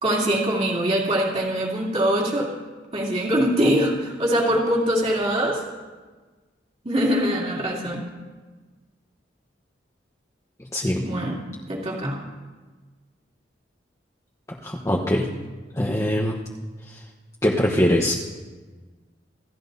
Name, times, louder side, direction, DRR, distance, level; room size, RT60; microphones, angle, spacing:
voice 1, 0.0-2.5 2.9-5.6 6.8-8.1 11.0-11.4 11.7-12.2, equal, 35° right, -3 dB, 2.8 m, -23 dB
voice 2, 10.7-11.0 14.6-15.3 15.7-16.4 16.9-17.0 17.4-18.2, equal, 15° left, -2 dB, 1.1 m, -22 dB
27.5 x 13.5 x 2.7 m, 1.3 s
head